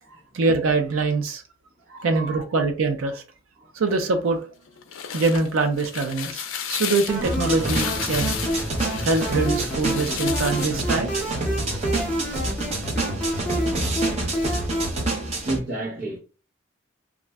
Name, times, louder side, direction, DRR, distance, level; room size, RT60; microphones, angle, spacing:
voice 1, 0.3-1.4 2.0-3.2 3.7-4.5 5.1-6.4 6.7-8.3 9.0-11.1, right 3 dB, 85° right, 0.5 m, -23 dB
voice 2, 1.9-2.4 3.6-3.7 15.4-16.2, right 2 dB, 55° right, 0.9 m, -31 dB
sound 1, 4.7-10.8, left 8 dB, 80° left, 0.4 m, -33 dB
sound 2, 7.1-15.1, equal, 5° left, 0.6 m, -29 dB
sound 3, 7.2-15.6, right 2 dB, 30° right, 0.7 m, -28 dB
2.4 x 2.1 x 3.4 m
head